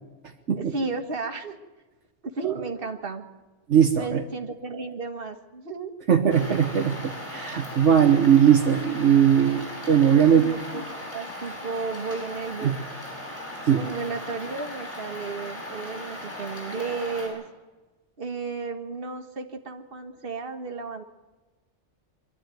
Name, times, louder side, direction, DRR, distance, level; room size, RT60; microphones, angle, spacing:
voice 1, 0.6-1.6 2.3-3.3 3.9-5.9 10.1-12.7 13.8-17.5 18.2-21.0, right 4 dB, 50° right, 5 dB, 1.8 m, -33 dB
voice 2, 3.7-4.2 6.1-10.5 12.6-12.7 13.7-13.8, right 8 dB, 70° right, 3 dB, 1.5 m, -19 dB
sound 1, 6.3-17.3, left 1 dB, 30° left, 8.1 m, -38 dB
24.0 x 12.5 x 9.2 m, 1.2 s
omnidirectional pair, 1.3 m